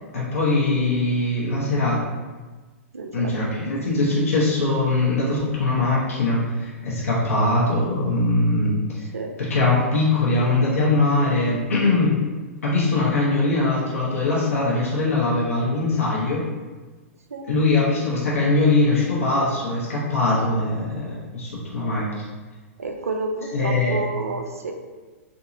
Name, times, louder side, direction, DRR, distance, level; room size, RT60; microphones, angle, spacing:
voice 1, 0.1-2.1 3.1-9.0 9.5-12.2 12.6-16.5 17.5-22.1 23.5-24.0, left 2 dB, 70° left, -6 dB, 0.8 m, -21 dB
voice 2, 2.9-3.3 9.1-9.3 17.3-17.5 22.8-24.8, right 3 dB, 80° right, 4 dB, 0.4 m, -30 dB
3.6 x 2.7 x 2.6 m, 1.3 s
figure-of-eight pair, 105°, 8 cm